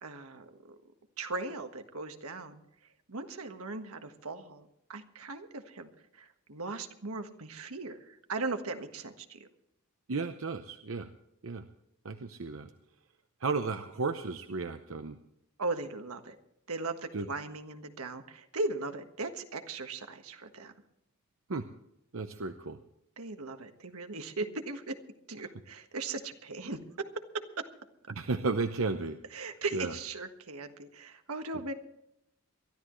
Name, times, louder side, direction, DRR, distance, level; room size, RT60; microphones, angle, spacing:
voice 1, 0.0-0.7 1.2-2.6 3.1-9.5 15.6-16.4 16.7-20.7 23.2-25.0 25.3-26.8 27.3-27.6 29.3-31.7, right 3 dB, 85° right, 7 dB, 1.5 m, -38 dB
voice 2, 10.1-11.1 11.4-11.7 12.0-12.7 13.4-15.2 17.1-17.3 21.5-21.7 22.1-22.8 28.1-29.2 29.7-29.9, right 3 dB, 65° right, 7 dB, 0.8 m, -33 dB
23.0 x 13.5 x 3.2 m, 0.77 s
head